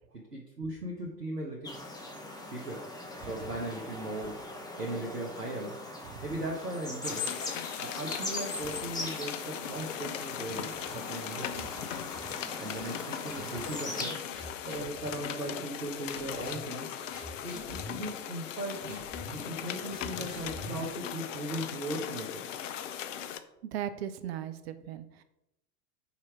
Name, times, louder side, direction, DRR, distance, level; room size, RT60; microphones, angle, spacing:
voice 1, 0.1-1.9 2.5-2.9 3.2-5.8 6.2-7.2 7.8-11.9 12.6-14.2 14.6-16.9 17.4-19.0 19.3-22.6, right 1 dB, 85° right, -1 dB, 1.1 m, -38 dB
sound 1, 1.6-14.1, left 2 dB, 10° left, 1.1 m, -41 dB
sound 2, 7.0-23.4, left 10 dB, 55° left, 0.6 m, -39 dB
sound 3, 10.5-11.1 11.5-12.7 13.3-13.8 14.3-15.8 16.1-21.8, left 1 dB, 35° left, 1.6 m, -46 dB
voice 2, 23.7-25.2, right 10 dB, 45° right, 11 dB, 0.6 m, -38 dB
5.5 x 4.4 x 4.7 m, 0.90 s
figure-of-eight pair, 90°, 46 cm